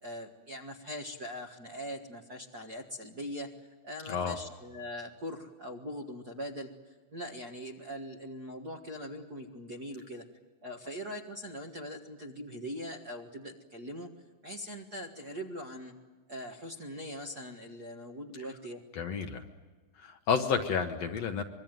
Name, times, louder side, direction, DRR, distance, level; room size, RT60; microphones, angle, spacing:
voice 1, 0.0-3.5 3.8-10.3 10.6-14.1 14.4-15.9 16.3-18.8, equal, 40° right, 2 dB, 1.6 m, -41 dB
voice 2, 19.0-19.4 20.0-21.4, left 6 dB, 60° left, 6 dB, 2.0 m, -30 dB
25.0 x 23.0 x 9.1 m, 1.3 s
omnidirectional pair, 3.7 m